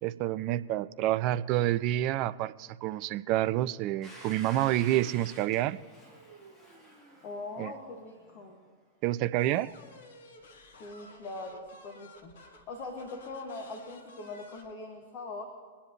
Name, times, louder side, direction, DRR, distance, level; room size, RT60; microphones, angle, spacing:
voice 1, 0.0-5.8 7.6-7.7 9.0-9.7, right 14 dB, 40° right, 15 dB, 0.4 m, -28 dB
Domestic sounds home sounds, 4.0-8.7, right 1 dB, 15° left, 2.9 m, -51 dB
voice 2, 7.2-8.6 10.8-15.4, left 2 dB, 40° left, 1 dB, 1.7 m, -42 dB
sound 1, 9.4-14.7, left 2 dB, 60° left, 1.4 m, -54 dB
24.0 x 10.0 x 3.0 m, 1.5 s
figure-of-eight pair, 90°, 0 cm